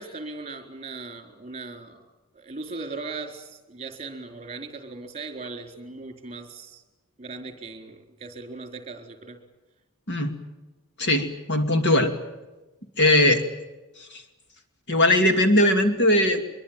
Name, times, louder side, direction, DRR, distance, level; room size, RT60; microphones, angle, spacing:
voice 1, 0.0-2.0 2.3-6.8 7.2-9.4, right 3 dB, 30° right, 5 dB, 4.0 m, -38 dB
voice 2, 11.0-12.1 13.0-13.5 14.1-14.2 14.9-16.4, left 1 dB, 55° left, 6 dB, 2.5 m, -20 dB
24.0 x 23.0 x 9.0 m, 1.1 s
head